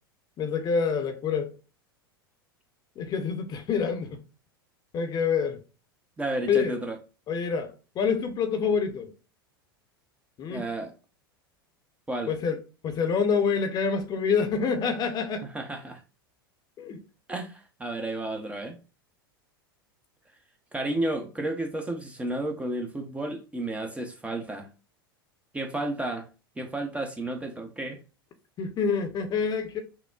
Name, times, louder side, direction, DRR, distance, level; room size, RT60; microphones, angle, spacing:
voice 1, 0.4-1.5 3.0-4.2 4.9-5.6 6.5-6.7 7.3-9.1 10.4-10.6 12.3-12.6 12.8-15.5 16.8-17.0 28.6-29.8, left 6 dB, 35° left, 0.7 m, -27 dB
voice 2, 6.2-7.0 10.5-10.9 12.1-12.3 15.5-16.0 17.3-18.8 20.7-24.7 25.5-26.3 26.6-28.0, right 1 dB, 10° right, 0.6 m, -32 dB
5.7 x 2.1 x 2.3 m
figure-of-eight pair, 85°, 12 cm